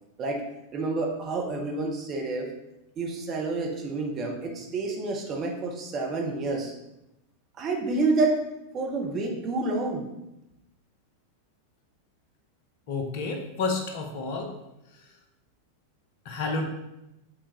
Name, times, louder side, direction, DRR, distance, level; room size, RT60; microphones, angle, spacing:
voice 1, 0.7-2.5 3.0-6.7 7.6-8.4 8.7-10.1, right 3 dB, 30° right, 1 dB, 1.1 m, -28 dB
voice 2, 12.9-14.5 16.2-16.7, left 3 dB, 50° left, 3 dB, 0.9 m, -30 dB
7.7 x 4.2 x 3.1 m, 0.90 s
figure-of-eight pair, 90°, 0 cm